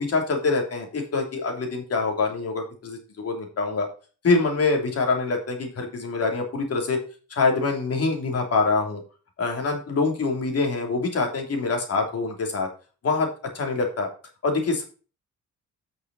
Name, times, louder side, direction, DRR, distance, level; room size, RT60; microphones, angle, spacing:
voice 1, 0.0-3.9 4.2-7.0 7.3-9.0 9.4-12.7 13.0-13.3 13.5-14.1 14.4-14.8, left 3 dB, 50° left, 3 dB, 3.0 m, -25 dB
8.9 x 6.3 x 4.1 m, 0.35 s
cardioid pair, 90°, 30 cm